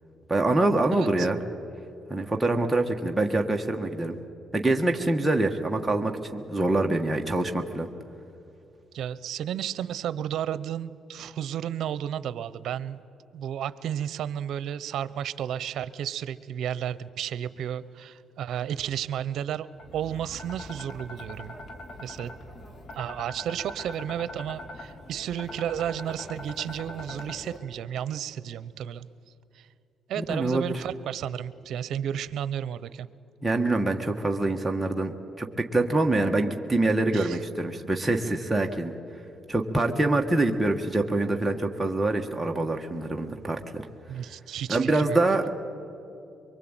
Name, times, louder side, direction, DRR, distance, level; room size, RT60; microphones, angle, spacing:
voice 1, 0.3-1.4 2.1-4.1 4.5-7.9 30.2-30.8 33.4-38.9 39.5-43.8 44.7-45.5, right 2 dB, 10° right, 2 dB, 1.5 m, -25 dB
voice 2, 0.9-1.3 8.9-13.0 13.3-19.7 19.9-21.6 22.0-22.3 22.9-29.1 29.5-29.7 30.1-33.1 37.1-37.4 44.1-45.2, right 10 dB, 75° right, 16 dB, 0.8 m, -32 dB
sound 1, 19.8-27.6, left 1 dB, 50° left, 3.5 m, -42 dB
23.5 x 23.5 x 9.0 m, 2.7 s
cardioid pair, 90°, 0 cm